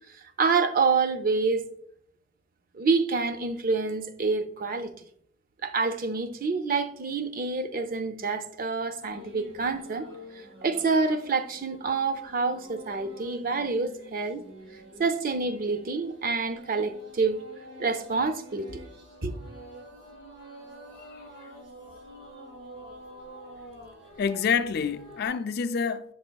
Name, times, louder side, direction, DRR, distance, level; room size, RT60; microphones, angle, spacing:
voice 1, 0.4-1.6 2.7-4.9 5.6-10.1 10.3-14.4 15.0-17.4 17.8-18.8 19.2-19.4, right 4 dB, 50° right, 0.5 m, -27 dB
sound 1, 9.0-25.3, equal, 90° right, 2.3 m, -48 dB
voice 2, 24.2-26.1, left 6 dB, 55° left, 0.3 m, -28 dB
8.4 x 6.1 x 2.3 m
head